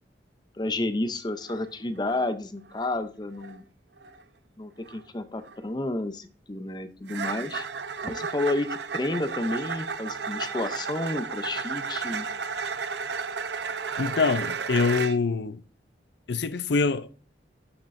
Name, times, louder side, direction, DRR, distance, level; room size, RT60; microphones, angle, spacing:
voice 1, 0.5-3.6 4.6-7.7 8.0-12.3, left 2 dB, 25° left, 0.6 m, -31 dB
sound 1, 1.4-1.6 1.9-2.3 2.7-3.0 3.3-3.6 4.0-4.2 4.8-5.0 5.4-5.6 7.1-15.2, right 5 dB, 70° right, 0.7 m, -33 dB
voice 2, 14.0-15.6 16.3-17.1, left 4 dB, 65° left, 0.6 m, -25 dB
12.0 x 7.4 x 2.6 m
head